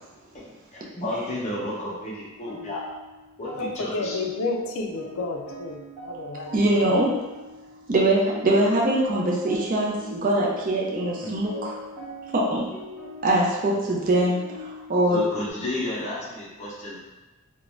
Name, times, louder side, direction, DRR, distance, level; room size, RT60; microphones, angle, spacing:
voice 1, 0.7-2.9 3.4-4.2 6.6-6.9 11.2-11.4 15.1-17.0, left 1 dB, 30° left, -6 dB, 0.6 m, -32 dB
sound 1, 1.9-15.5, left 1 dB, ahead, 0.8 m, -42 dB
voice 2, 3.6-6.6, left 3 dB, 75° left, 3 dB, 0.4 m, -30 dB
voice 3, 6.5-7.1 7.9-11.7 12.3-12.7 13.2-15.3, right 1 dB, 40° right, -3 dB, 0.5 m, -22 dB
2.4 x 2.1 x 3.1 m, 1.1 s
head